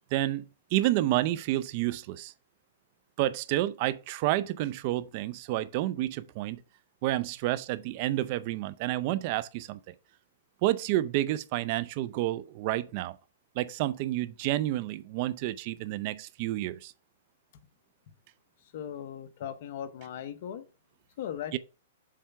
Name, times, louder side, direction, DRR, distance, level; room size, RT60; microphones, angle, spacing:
voice 1, 0.1-2.3 3.2-6.6 7.0-9.9 10.6-13.2 13.6-16.9 21.5-21.6, right 15 dB, 45° right, 0.5 m, -30 dB
voice 2, 18.7-20.6 21.2-21.6, left 9 dB, 55° left, 0.9 m, -38 dB
7.4 x 3.4 x 5.6 m
hypercardioid pair, 140°, 0 cm